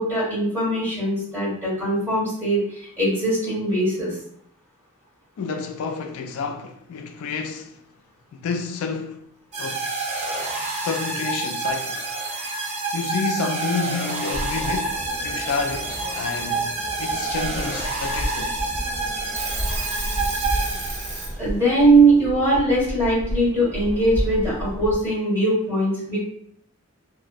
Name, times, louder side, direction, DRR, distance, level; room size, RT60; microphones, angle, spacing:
voice 1, 0.0-4.1 21.4-26.2, right 2 dB, 10° right, 1.4 m, -21 dB
voice 2, 5.4-7.8 8.3-9.2 9.6-9.9 10.8-12.1 12.9-16.7 17.0-18.6, left 5 dB, 70° left, 0.3 m, -29 dB
sound 1, 9.5-21.3, right 3 dB, 30° right, 0.4 m, -28 dB
Alarm / Clock, 9.7-10.5 11.6-11.7 11.9-12.8 13.9-14.5 15.9-16.0 16.8-17.2 17.6-17.7 18.2-18.3 18.8-18.9 19.2-21.4, right 2 dB, 90° right, 0.8 m, -35 dB
sound 2, 14.3-24.9, equal, 50° right, 1.3 m, -32 dB
3.4 x 2.1 x 2.4 m
head